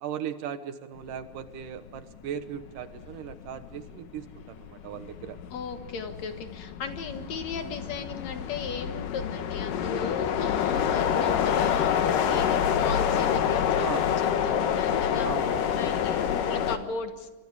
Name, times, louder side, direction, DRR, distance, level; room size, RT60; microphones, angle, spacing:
voice 1, 0.0-5.4 13.8-14.1 15.2-15.8, right 9 dB, 75° right, 10 dB, 2.7 m, -38 dB
sound 1, 1.8-2.0 2.4-16.8, left 8 dB, 80° left, 2.9 m, -27 dB
voice 2, 5.5-14.1 14.5-15.3 15.8-17.3, left 5 dB, 60° left, 7 dB, 2.5 m, -36 dB
29.0 x 23.5 x 4.9 m, 1.2 s
omnidirectional pair, 3.8 m